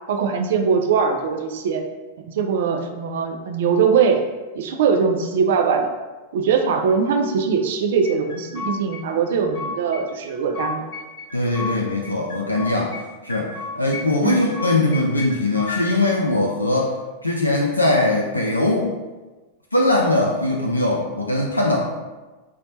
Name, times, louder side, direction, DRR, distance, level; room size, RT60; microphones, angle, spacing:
voice 1, 0.1-1.8 2.3-4.2 4.5-5.9 6.3-10.9 14.2-14.5, right 6 dB, 55° right, 4 dB, 0.3 m, -21 dB
sound 1, 8.0-9.0 9.3-10.0 10.3-11.7 12.0-13.0 13.3-14.0 14.3-15.8, left 4 dB, 55° left, 0.8 m, -32 dB
voice 2, 11.3-12.9 13.2-17.0 17.2-18.9 19.7-21.8, left 2 dB, 85° left, -1 dB, 0.3 m, -21 dB
3.8 x 2.1 x 2.7 m, 1.2 s
figure-of-eight pair, 90°, 0 cm